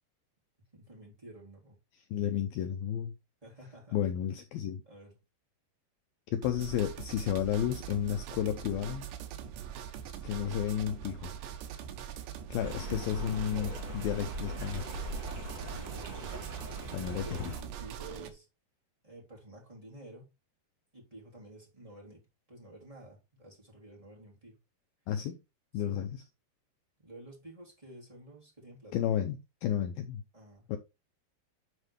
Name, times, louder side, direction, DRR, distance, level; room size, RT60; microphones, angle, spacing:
voice 1, 0.7-1.8 3.4-4.0 4.8-5.2 13.5-13.8 14.2-14.3 15.6-16.3 17.0-18.5 19.0-20.3 20.9-22.2 22.5-24.6 25.7-26.0 27.0-29.0 30.3-30.7, right 1 dB, 10° right, 2.5 m, -50 dB
voice 2, 2.1-3.1 3.9-4.8 6.3-9.1 10.2-11.3 12.5-14.9 16.9-17.5 25.1-25.4 25.7-26.2 28.9-30.2 30.7-30.8, left 10 dB, 90° left, 2.0 m, -32 dB
sound 1, 6.4-18.3, right 9 dB, 85° right, 3.2 m, -42 dB
Stream, 12.6-17.6, right 1 dB, 35° right, 3.4 m, -41 dB
9.9 x 4.4 x 3.3 m
omnidirectional pair, 4.8 m